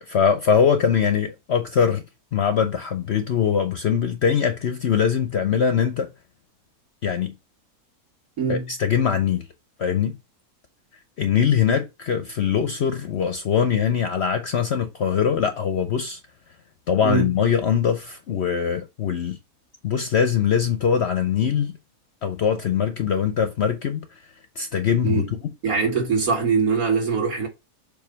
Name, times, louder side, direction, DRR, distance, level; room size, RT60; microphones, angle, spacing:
voice 1, 0.0-2.0 2.3-6.1 7.0-7.3 8.5-9.5 9.8-10.2 11.2-16.2 16.9-19.4 19.8-21.7 22.2-24.1 24.6-25.2, left 7 dB, 60° left, 0.7 m, -22 dB
voice 2, 8.4-8.7 17.0-17.3 25.0-25.3 25.6-27.5, right 4 dB, 65° right, 2.4 m, -22 dB
7.0 x 2.7 x 5.1 m
omnidirectional pair, 1.7 m